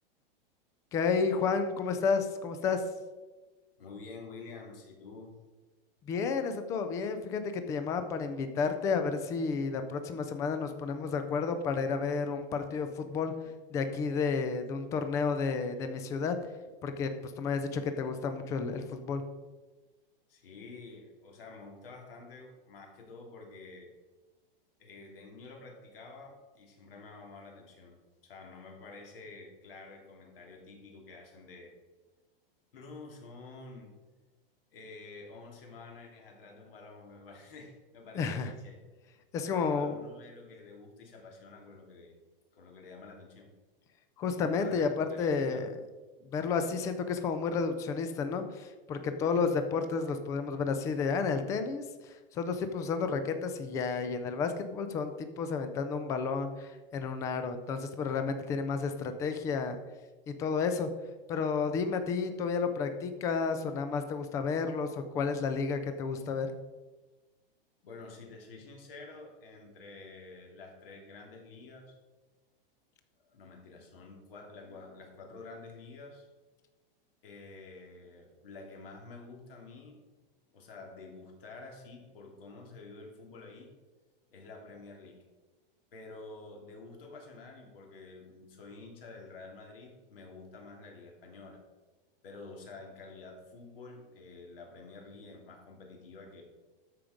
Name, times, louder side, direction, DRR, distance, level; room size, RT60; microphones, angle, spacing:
voice 1, 0.9-2.8 6.0-13.3 13.7-16.4 16.8-19.2 38.1-38.5 39.3-39.9 44.2-45.7 46.2-59.8 60.3-60.9 61.3-66.5, left 5 dB, 10° left, 9 dB, 0.3 m, -31 dB
voice 2, 3.8-5.3 20.3-23.9 24.8-28.0 28.2-31.7 32.7-33.9 34.7-38.8 39.5-42.2 42.5-43.5 44.5-45.7 67.8-72.0 73.3-76.3 77.2-80.0 80.5-83.7 84.3-85.2 85.9-91.6 92.2-96.4, left 3 dB, 70° left, 1 dB, 3.0 m, -49 dB
13.0 x 5.1 x 5.0 m, 1.3 s
supercardioid pair, 160°, 29 cm